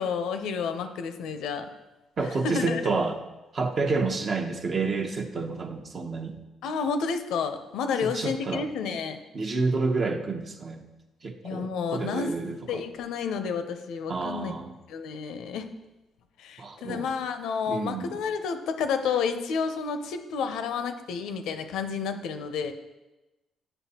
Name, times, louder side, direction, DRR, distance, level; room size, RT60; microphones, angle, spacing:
voice 1, 0.0-1.7 2.4-2.8 6.6-9.2 11.4-12.3 12.7-14.5 14.9-15.7 16.4-22.7, left 6 dB, 85° left, 8 dB, 0.5 m, -30 dB
voice 2, 2.2-3.2 3.5-6.4 8.0-8.7 9.3-10.8 11.2-12.8 14.1-14.7 16.6-17.1 17.7-18.2, right 3 dB, 45° right, 5 dB, 0.8 m, -29 dB
9.0 x 5.4 x 2.8 m, 1.1 s
cardioid pair, 90°, 0 cm